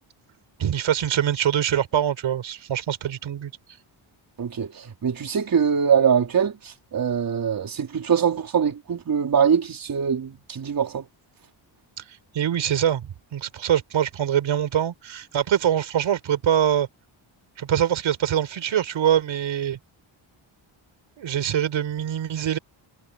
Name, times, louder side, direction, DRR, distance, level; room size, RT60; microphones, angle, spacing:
voice 1, 0.6-3.5 12.3-16.9 17.6-19.8 21.2-22.6, right 10 dB, 70° right, 5.8 m, -24 dB
voice 2, 4.4-11.0, right 7 dB, 45° right, 4.5 m, -23 dB
wide cardioid pair, 170°, 48 cm